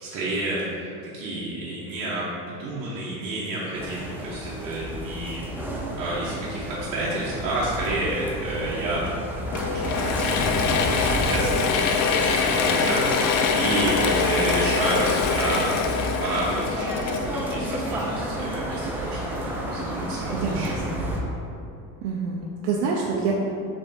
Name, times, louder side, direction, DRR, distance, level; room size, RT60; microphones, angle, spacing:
voice 1, 0.0-9.1 9.5-15.8 16.2-20.8, right 1 dB, 55° right, -8 dB, 1.0 m, -30 dB
sound 1, 3.7-21.2, right 1 dB, 5° right, 0.5 m, -32 dB
Mechanisms / Drill, 9.5-18.1, left 5 dB, 45° left, 0.5 m, -24 dB
voice 2, 20.3-21.1 22.0-23.3, right 5 dB, 70° right, -2 dB, 0.6 m, -27 dB
3.4 x 3.4 x 4.1 m, 2.6 s
supercardioid pair, 115°, 41 cm